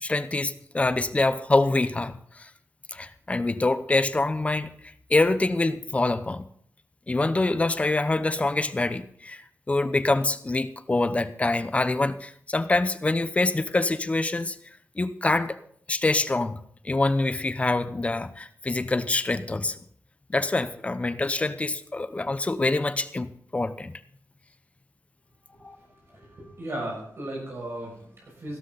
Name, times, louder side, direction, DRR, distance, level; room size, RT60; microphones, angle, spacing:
voice 1, 0.0-2.5 2.9-6.4 7.1-9.4 9.7-14.6 15.0-15.6 15.9-16.6 16.8-19.8 20.3-23.9 25.6-25.8, left 2 dB, 25° left, 12 dB, 0.7 m, -25 dB
voice 2, 26.1-28.6, right 1 dB, 50° right, -2 dB, 6.2 m, -36 dB
16.5 x 12.5 x 4.0 m, 0.62 s
wide cardioid pair, 140°, 6 cm